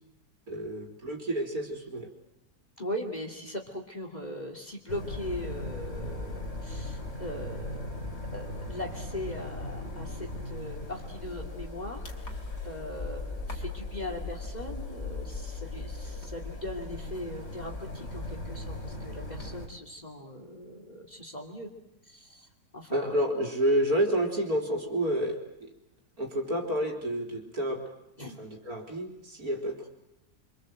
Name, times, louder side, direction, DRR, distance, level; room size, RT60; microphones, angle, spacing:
voice 1, 0.5-2.1 22.9-25.7 26.2-27.8 28.4-29.9, right 1 dB, 50° right, 2 dB, 4.0 m, -29 dB
voice 2, 2.8-8.0 8.3-12.1 12.6-21.7 22.0-22.5 22.7-23.2 28.2-28.4, left 1 dB, 20° left, 3 dB, 2.9 m, -40 dB
sound 1, 4.9-19.7, left 2 dB, 40° left, 3.5 m, -38 dB
26.0 x 25.5 x 7.8 m, 0.86 s
omnidirectional pair, 2.0 m